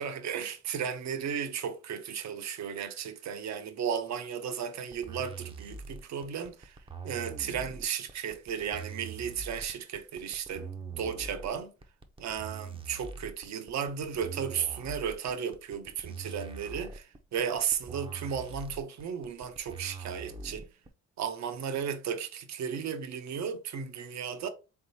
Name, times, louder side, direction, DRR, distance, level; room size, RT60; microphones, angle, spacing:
voice 1, 0.0-6.8 7.0-10.7 11.0-11.7 12.2-20.7 21.2-24.5, right 7 dB, 65° right, 0.7 m, -34 dB
sound 1, 4.9-20.9, right 4 dB, 20° right, 0.6 m, -43 dB
3.8 x 3.6 x 2.7 m
cardioid pair, 90°, 30 cm